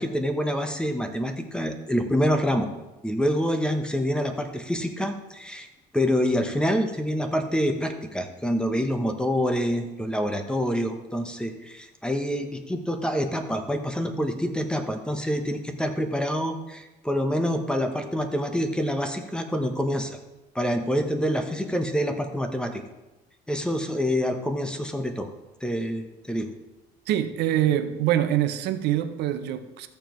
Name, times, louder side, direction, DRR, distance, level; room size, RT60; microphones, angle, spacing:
voice 1, 0.0-2.7 3.0-5.7 5.9-20.2 20.5-22.8 23.5-25.3 25.6-26.5, equal, 5° left, 1.0 m, -26 dB
voice 2, 27.1-29.9, right 12 dB, 85° right, 0.7 m, -24 dB
13.5 x 7.0 x 3.1 m
cardioid pair, 110°, 17 cm